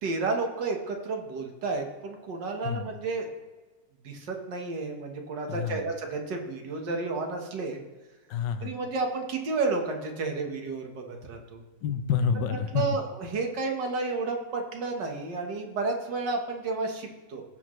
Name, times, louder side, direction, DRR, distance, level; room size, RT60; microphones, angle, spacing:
voice 1, 0.0-3.3 4.0-7.8 8.6-11.6 12.7-17.4, right 3 dB, 75° right, 2 dB, 2.0 m, -31 dB
voice 2, 5.5-5.8 8.3-8.7 11.8-12.8, left 7 dB, 85° left, 10 dB, 1.4 m, -28 dB
16.5 x 6.2 x 3.2 m, 1.2 s
omnidirectional pair, 1.9 m